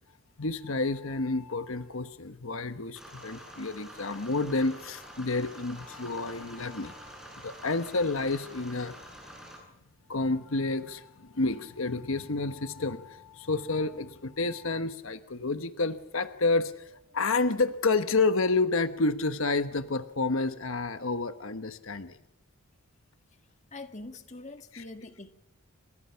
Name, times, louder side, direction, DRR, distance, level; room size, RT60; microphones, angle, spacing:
voice 1, 0.4-9.0 10.1-22.2 24.7-24.8, left 3 dB, 70° left, 1.2 m, -30 dB
sound 1, 3.0-9.6, equal, ahead, 7.6 m, -47 dB
voice 2, 23.7-25.3, left 2 dB, 30° left, 1.7 m, -43 dB
30.0 x 26.0 x 5.8 m
head